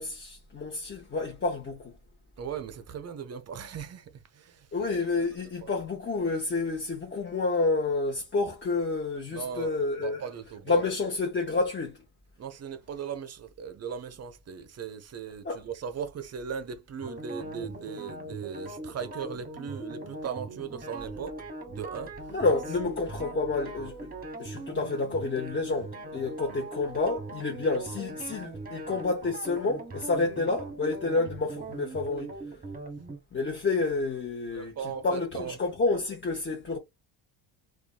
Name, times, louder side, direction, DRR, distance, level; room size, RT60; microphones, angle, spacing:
voice 1, 0.0-1.9 4.7-10.2 10.7-12.0 15.4-15.6 22.3-24.1 24.4-32.4 33.3-34.7 35.0-36.8, left 3 dB, 25° left, 0.8 m, -29 dB
voice 2, 2.4-4.9 5.1-5.7 9.3-10.8 12.4-21.3 21.7-22.3 34.5-35.6, right 7 dB, 35° right, 0.6 m, -38 dB
sound 1, 17.0-33.2, right 2 dB, 20° right, 1.1 m, -40 dB
2.5 x 2.4 x 2.2 m
supercardioid pair, 80°, 47 cm